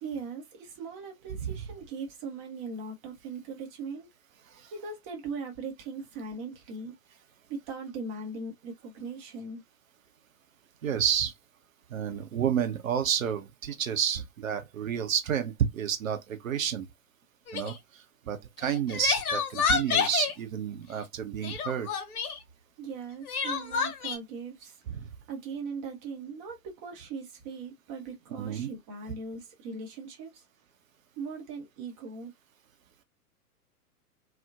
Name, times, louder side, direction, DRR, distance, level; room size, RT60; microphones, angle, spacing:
voice 1, 0.0-4.1 4.7-6.9 7.5-9.6 22.8-24.7 25.3-30.3 31.2-32.3, right 4 dB, 20° right, 0.6 m, -39 dB
voice 2, 1.3-1.6 4.5-4.7 10.8-11.3 11.9-16.9 17.5-21.9 24.9-25.1 28.4-28.7, right 9 dB, 60° right, 0.7 m, -30 dB
Crying sobbing, 17.5-17.8 18.6-20.3 21.4-22.4 23.3-24.2, left 6 dB, 70° left, 0.7 m, -29 dB
2.7 x 2.1 x 2.2 m
figure-of-eight pair, 110°, 46 cm